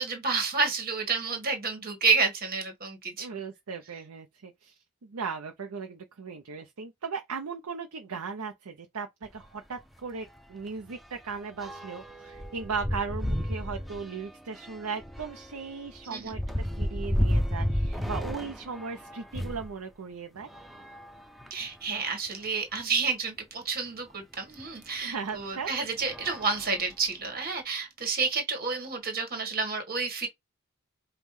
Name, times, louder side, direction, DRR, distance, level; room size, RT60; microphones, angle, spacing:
voice 1, 0.0-3.4 16.1-16.3 21.5-30.3, right 4 dB, 45° right, 1.5 m, -30 dB
voice 2, 3.2-4.7 5.0-20.5 25.0-25.7, right 5 dB, 80° right, 0.6 m, -37 dB
sound 1, 9.2-9.4 9.8-9.9 10.2-19.7 20.4-21.8 22.5-22.6 22.8-22.9 24.6-24.7 25.3-25.5 26.0-27.3, equal, ahead, 0.5 m, -33 dB
5.3 x 2.2 x 3.2 m
head